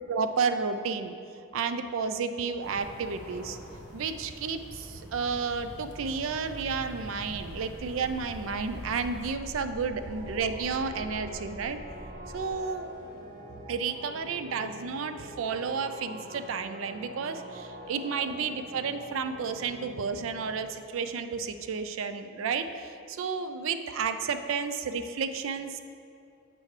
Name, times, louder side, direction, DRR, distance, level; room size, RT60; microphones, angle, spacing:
voice 1, 0.1-1.1 1.5-3.6 3.9-11.8 12.3-12.9 13.7-25.8, right 5 dB, 70° right, 9 dB, 0.4 m, -32 dB
sound 1, 2.6-9.4, equal, 40° left, 1.4 m, -45 dB
sound 2, 7.2-12.5, equal, 5° right, 1.2 m, -45 dB
sound 3, 9.9-20.6, equal, 40° right, 1.1 m, -45 dB
7.5 x 3.2 x 5.8 m, 2.5 s
head